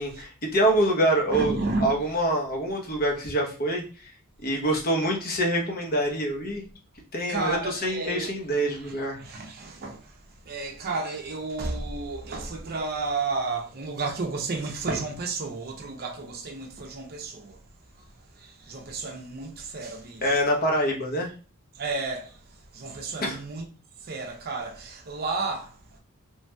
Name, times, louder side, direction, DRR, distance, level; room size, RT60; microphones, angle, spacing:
voice 1, 0.0-3.8 4.4-6.6 7.1-9.2 20.2-21.3 23.2-23.4, right 1 dB, 40° left, 0.8 m, -25 dB
voice 2, 1.3-1.9 7.3-17.6 17.9-20.4 21.7-23.7 24.0-26.0, right 3 dB, 45° right, 0.6 m, -32 dB
3.1 x 2.8 x 2.2 m
head